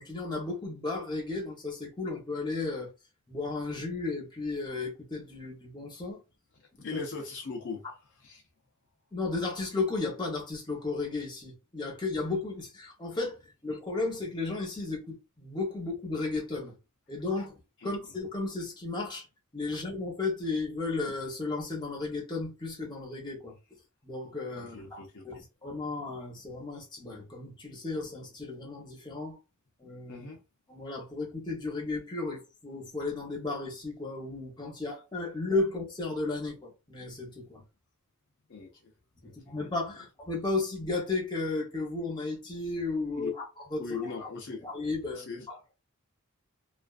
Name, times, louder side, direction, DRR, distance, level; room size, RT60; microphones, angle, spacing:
voice 1, 0.0-2.9 3.3-6.2 6.9-7.0 9.1-16.7 17.1-19.3 19.5-23.5 24.0-29.4 29.8-30.3 30.7-37.6 39.2-43.3 43.7-43.8 44.6-45.6, left 3 dB, 20° left, 0.9 m, -34 dB
voice 2, 6.6-8.4 17.8-17.9 24.6-25.4 30.1-30.4 38.5-38.9 39.2-39.5 39.9-40.1 43.1-43.3 43.8-44.6 45.1-45.5, left 4 dB, 55° left, 0.5 m, -40 dB
2.4 x 2.4 x 2.4 m
head